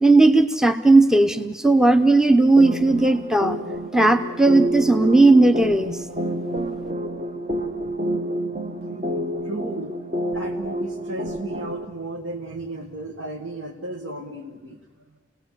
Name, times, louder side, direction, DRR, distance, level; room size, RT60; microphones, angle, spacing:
voice 1, 0.0-3.6 3.9-6.0, right 2 dB, 5° right, 8 dB, 0.7 m, -16 dB
sound 1, 2.6-11.8, equal, 35° right, 1.0 m, -29 dB
voice 2, 8.8-9.9 10.3-14.8, right 2 dB, 75° right, 1 dB, 1.7 m, -34 dB
30.0 x 18.0 x 7.5 m, 1.4 s
head